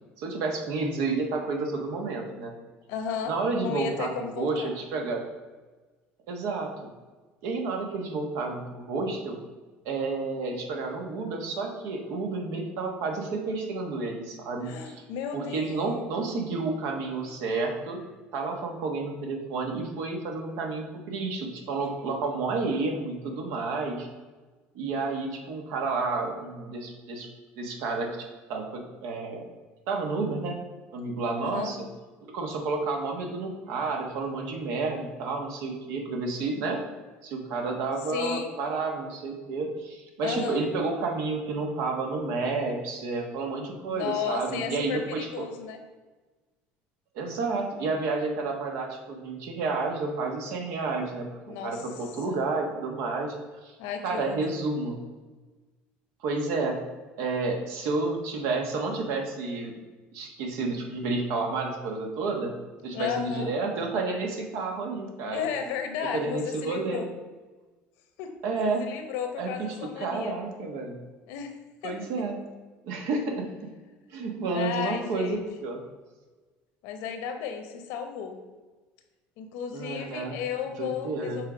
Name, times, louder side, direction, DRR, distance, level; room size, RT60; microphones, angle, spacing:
voice 1, 0.2-2.5 3.2-5.2 6.3-6.7 7.4-9.4 9.8-15.0 15.3-18.0 18.3-24.1 24.7-27.3 27.6-29.4 29.9-30.5 30.9-31.8 32.3-36.8 37.2-45.4 47.1-53.4 53.6-53.7 54.0-55.0 56.2-56.8 57.2-59.8 60.1-62.6 62.8-65.5 66.1-67.0 68.4-68.8 69.4-69.5 70.0-71.0 71.8-72.4 72.8-73.4 74.1-75.8 79.7-80.4 80.8-81.4, right 3 dB, 75° right, 2 dB, 1.3 m, -30 dB
voice 2, 2.9-4.7 14.6-16.0 21.8-21.9 31.4-31.7 38.1-38.5 40.2-40.6 43.9-45.8 51.5-51.8 52.3-52.4 53.8-54.5 62.9-63.5 65.2-67.1 68.2-68.3 68.6-70.4 71.3-71.5 71.8-72.0 74.5-75.4 76.8-78.4 79.4-81.5, left 7 dB, 80° left, 6 dB, 1.0 m, -34 dB
6.4 x 3.7 x 5.0 m, 1.3 s
cardioid pair, 115°, 5 cm